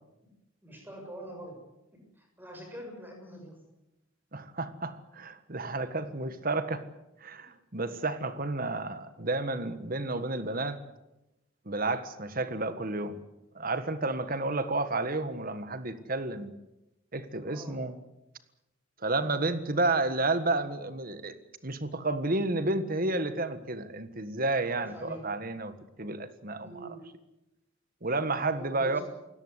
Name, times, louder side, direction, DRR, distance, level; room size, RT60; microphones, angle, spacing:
voice 1, 0.6-1.6 2.2-3.6 7.4-7.5 12.4-12.6 17.4-17.8 19.1-19.4 24.7-25.2 26.6-27.0 28.5-29.0, right 1 dB, 10° right, 2 dB, 7.0 m, -45 dB
voice 2, 4.3-6.8 7.2-10.8 11.6-13.2 13.5-16.5 17.1-18.0 19.0-21.4 21.6-26.9 28.0-29.0, right 2 dB, 45° right, 11 dB, 1.6 m, -31 dB
28.5 x 17.5 x 8.2 m, 0.93 s
head